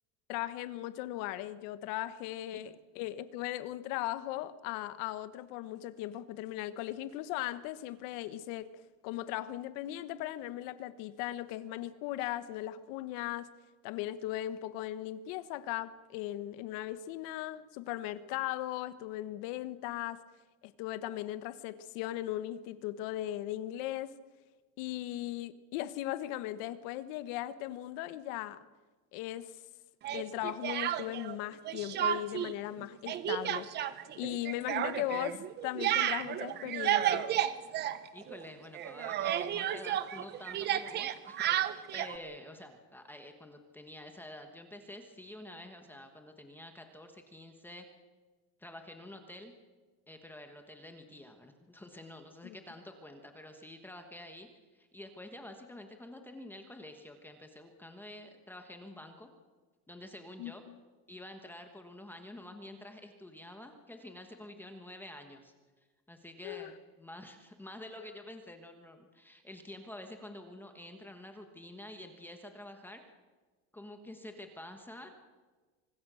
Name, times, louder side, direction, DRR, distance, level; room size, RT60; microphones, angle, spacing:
voice 1, 0.3-8.7 9.0-13.5 13.8-20.2 20.6-24.1 24.8-28.6 29.1-29.5 30.1-33.7 34.2-37.3 52.4-52.5 60.4-60.8 66.4-66.7, left 14 dB, 60° left, 14 dB, 1.2 m, -38 dB
Speech, 30.0-31.4 31.7-32.5 32.8-38.5 38.7-42.2, right 11 dB, 30° right, 0.8 m, -32 dB
voice 2, 38.1-47.8 48.6-49.5 50.1-59.3 59.9-60.6 61.1-65.5 66.1-73.0 73.7-75.1, left 1 dB, 5° left, 5 dB, 1.3 m, -49 dB
25.0 x 20.0 x 6.3 m, 1.3 s
cardioid pair, 175°, 36 cm